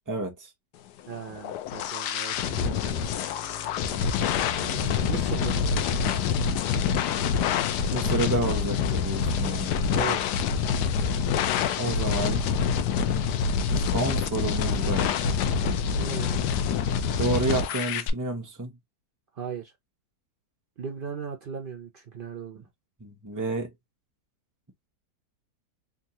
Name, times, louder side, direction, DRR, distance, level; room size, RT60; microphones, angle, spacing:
voice 1, 0.1-0.5 7.9-9.8 11.8-12.5 13.8-15.1 17.2-18.7 23.0-23.7, right 2 dB, 20° right, 0.5 m, -30 dB
sound 1, 1.1-18.1, left 6 dB, 80° left, 1.2 m, -26 dB
voice 2, 1.1-3.0 4.6-6.1 9.9-10.4 16.0-16.6 19.4-19.7 20.8-22.7, right 7 dB, 85° right, 0.4 m, -38 dB
sound 2, 2.3-9.2, left 10 dB, 65° left, 0.8 m, -38 dB
3.6 x 2.3 x 2.8 m
omnidirectional pair, 1.8 m